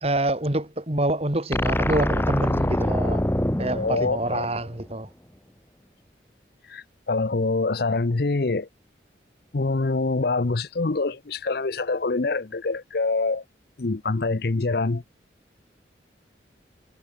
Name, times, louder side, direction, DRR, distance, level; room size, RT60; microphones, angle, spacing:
voice 1, 0.0-3.2 3.6-5.1, right 1 dB, 35° right, 2.3 m, -26 dB
sound 1, 1.5-4.8, left 1 dB, 10° left, 1.1 m, -25 dB
voice 2, 3.7-4.5 6.7-8.7 9.5-13.4 13.8-15.0, left 3 dB, 60° left, 0.7 m, -25 dB
head